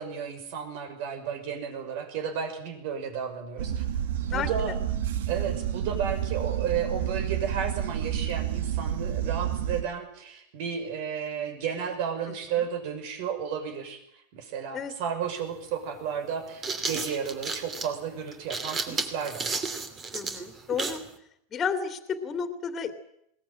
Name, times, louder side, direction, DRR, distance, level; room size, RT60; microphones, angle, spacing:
voice 1, 0.0-3.8 4.2-4.8 5.3-14.0 14.3-19.6, right 7 dB, 60° right, 8 dB, 5.9 m, -33 dB
sound 1, 3.6-9.8, right 10 dB, 85° right, 1.9 m, -30 dB
sound 2, 15.2-15.3 16.3-21.1, right 4 dB, 25° right, 2.8 m, -33 dB
voice 2, 20.1-21.0 21.5-22.9, left 6 dB, 25° left, 7 dB, 2.6 m, -31 dB
21.0 x 19.0 x 8.9 m, 0.74 s
supercardioid pair, 140°, 0 cm